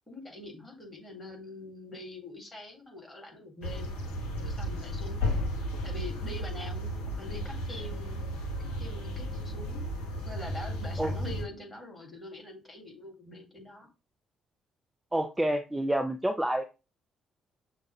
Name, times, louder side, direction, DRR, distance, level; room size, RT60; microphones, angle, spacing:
voice 1, 0.1-4.0 4.4-5.2 5.6-8.2 8.8-9.8 10.3-13.9, left 1 dB, 15° left, 0 dB, 2.0 m, -44 dB
sound 1, 3.6-11.4, equal, 70° left, 0.7 m, -34 dB
voice 2, 15.1-16.6, right 1 dB, 10° right, 7 dB, 0.4 m, -28 dB
6.1 x 2.1 x 3.1 m, 0.29 s
figure-of-eight pair, 45°, 0 cm